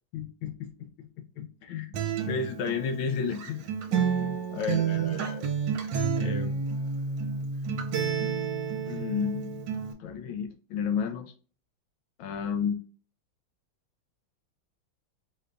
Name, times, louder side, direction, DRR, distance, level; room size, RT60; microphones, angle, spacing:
voice 1, 0.1-3.6 3.9-4.1 4.5-5.5 6.2-6.7 8.9-9.6 10.0-11.3 12.2-12.8, left 6 dB, 80° left, 7 dB, 1.4 m, -32 dB
Acoustic guitar, 1.9-9.9, right 6 dB, 70° right, 1.4 m, -30 dB
5.1 x 2.2 x 3.8 m, 0.40 s
omnidirectional pair, 2.3 m